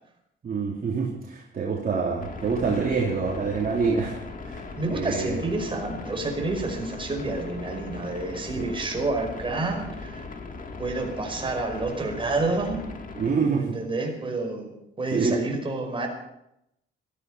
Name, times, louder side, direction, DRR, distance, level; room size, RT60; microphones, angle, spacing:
voice 1, 0.4-4.1 4.4-4.6 4.9-5.3 8.6-8.7 13.2-13.7 15.1-15.4, right 5 dB, 45° right, -3 dB, 3.1 m, -26 dB
sound 1, 2.2-13.3, left 3 dB, 45° left, 2.4 m, -39 dB
voice 2, 4.8-10.2 10.8-12.8 13.6-16.1, right 2 dB, 25° right, 2 dB, 5.2 m, -29 dB
17.0 x 14.0 x 5.6 m, 0.81 s
cardioid pair, 90°, 20 cm